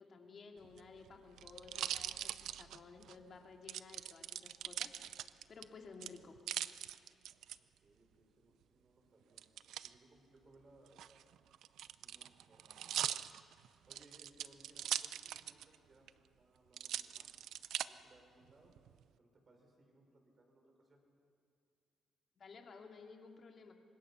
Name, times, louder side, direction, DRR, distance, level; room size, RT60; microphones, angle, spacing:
voice 1, 0.0-6.4 22.4-23.7, left 4 dB, 50° left, 3 dB, 2.5 m, -55 dB
sound 1, 0.6-3.2 3.7-5.6 6.0-7.6 9.4-9.9 10.9-15.8 16.1-16.2 16.7-17.9 18.5-19.0, right 11 dB, 75° right, 0.5 m, -42 dB
voice 2, 7.6-9.4 9.8-11.3 11.9-13.1 13.6-16.1 16.4-17.3 17.9-18.8 19.2-21.0, right 2 dB, 40° right, 2 dB, 5.7 m, -66 dB
25.0 x 20.5 x 5.8 m, 2.2 s
cardioid pair, 90°, 0 cm